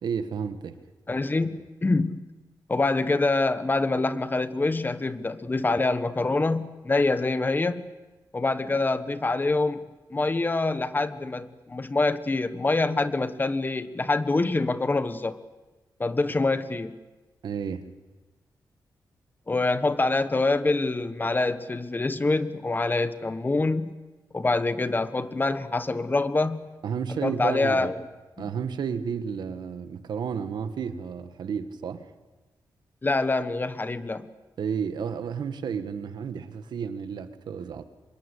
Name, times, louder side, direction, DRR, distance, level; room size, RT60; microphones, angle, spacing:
voice 1, 0.0-0.8 17.4-17.9 26.8-27.9 28.4-32.1 34.6-37.8, right 7 dB, 80° right, 10 dB, 1.6 m, -32 dB
voice 2, 1.1-2.3 2.7-7.9 8.3-9.8 10.1-15.4 16.0-17.0 19.5-24.0 24.3-26.7 27.2-28.1 28.4-28.5 33.0-34.3, left 3 dB, 25° left, 12 dB, 1.3 m, -25 dB
25.0 x 22.0 x 8.3 m, 1.2 s
cardioid pair, 90°, 7 cm